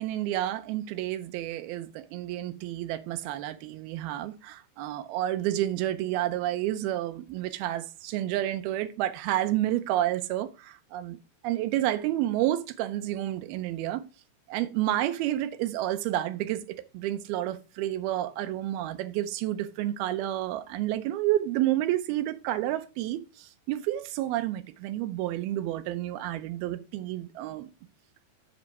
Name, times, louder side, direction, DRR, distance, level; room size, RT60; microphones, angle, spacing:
voice 1, 0.0-11.2 11.4-14.0 14.5-27.7, right 13 dB, 85° right, 2.6 m, -30 dB
7.9 x 6.2 x 4.7 m
omnidirectional pair, 4.3 m